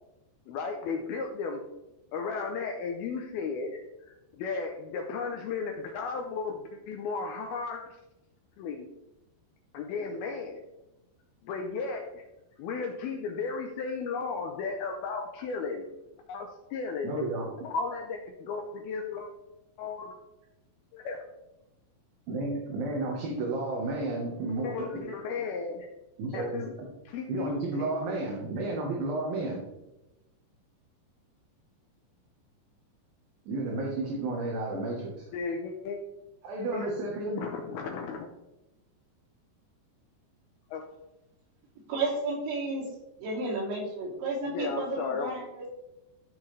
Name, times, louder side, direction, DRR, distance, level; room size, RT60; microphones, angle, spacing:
voice 1, 0.5-1.6 2.1-8.0 8.6-8.9 9.7-10.6 11.4-12.2 12.6-15.9 16.3-17.2 17.6-19.3 19.8-20.1 20.9-21.2 24.6-25.9 26.3-26.7 27.1-27.9 35.3-36.0 36.7-36.9 37.4-38.3 40.7-40.8 44.5-45.3, left 4 dB, 80° left, 3 dB, 2.2 m, -35 dB
voice 2, 17.0-17.5 22.3-25.0 26.2-26.6 27.3-29.6 33.5-35.3 36.4-37.4, right 2 dB, 65° right, -1 dB, 2.6 m, -32 dB
voice 3, 41.9-42.9 43.2-45.7, right 2 dB, 90° right, -4 dB, 4.8 m, -32 dB
14.0 x 6.1 x 3.2 m, 0.96 s
omnidirectional pair, 5.2 m